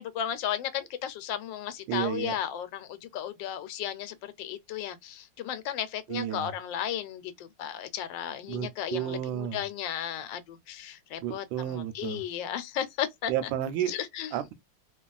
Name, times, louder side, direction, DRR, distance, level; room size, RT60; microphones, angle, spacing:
voice 1, 0.0-13.3 13.9-14.3, left 10 dB, 80° left, 1.3 m, -34 dB
voice 2, 1.9-2.3 6.1-6.5 8.5-9.6 11.2-12.2 13.3-13.9 14.3-14.5, right 11 dB, 90° right, 1.3 m, -31 dB
3.1 x 2.3 x 2.3 m
omnidirectional pair, 2.0 m